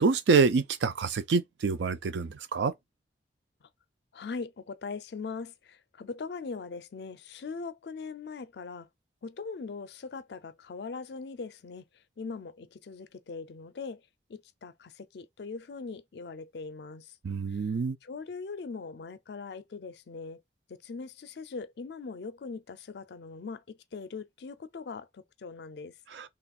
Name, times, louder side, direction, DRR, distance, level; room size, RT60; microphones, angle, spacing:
voice 1, 0.0-2.7 17.2-18.0 26.1-26.3, right 4 dB, 85° right, 0.4 m, -26 dB
voice 2, 4.1-8.9 9.2-11.8 12.2-14.0 14.3-17.1 17.5-17.6 18.0-20.4 20.7-25.9, left 4 dB, 70° left, 0.4 m, -41 dB
3.0 x 2.3 x 4.2 m
head